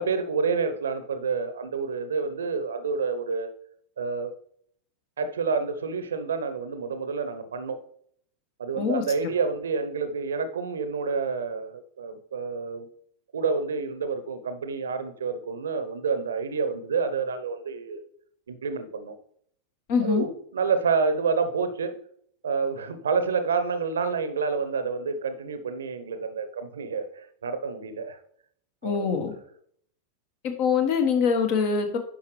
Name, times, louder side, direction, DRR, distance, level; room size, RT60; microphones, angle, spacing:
voice 1, 0.0-3.5 4.0-4.3 5.2-7.8 8.6-12.9 13.3-18.0 18.5-19.1 20.0-22.0 22.4-28.2 28.8-29.2, right 5 dB, 65° right, 10 dB, 0.8 m, -28 dB
voice 2, 19.9-20.2 28.8-29.3 30.4-32.0, left 6 dB, 45° left, 6 dB, 1.3 m, -24 dB
10.0 x 5.6 x 3.2 m, 0.64 s
figure-of-eight pair, 90°, 0 cm